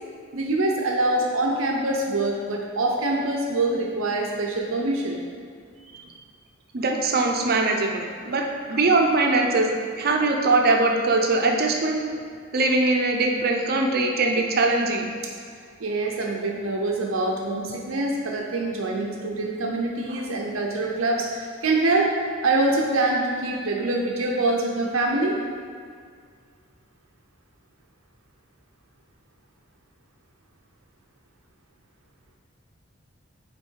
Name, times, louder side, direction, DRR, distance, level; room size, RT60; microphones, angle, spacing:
voice 1, 0.3-5.2 15.8-22.1 22.4-25.4, right 2 dB, 85° right, -1 dB, 0.7 m, -25 dB
voice 2, 6.7-9.7 10.0-12.0 12.5-15.1, right 2 dB, 50° right, 2 dB, 0.7 m, -21 dB
6.3 x 4.4 x 4.6 m, 2.1 s
head